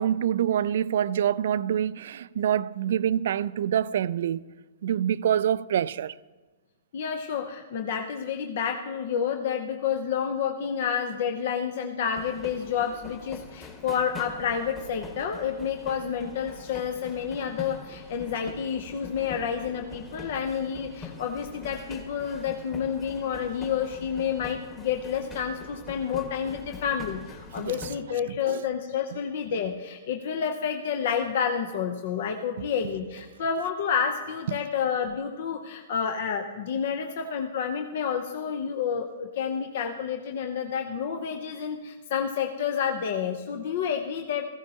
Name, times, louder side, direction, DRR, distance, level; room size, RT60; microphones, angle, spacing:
voice 1, 0.0-4.4 4.8-6.1 27.6-27.8 28.5-28.6 34.5-34.6, right 10 dB, 65° right, 0.3 m, -26 dB
voice 2, 6.9-44.5, left 7 dB, 60° left, 0.8 m, -29 dB
sound 1, 12.1-28.0, left 3 dB, 20° left, 1.7 m, -44 dB
16.0 x 14.5 x 2.9 m
hypercardioid pair, 115°, 0 cm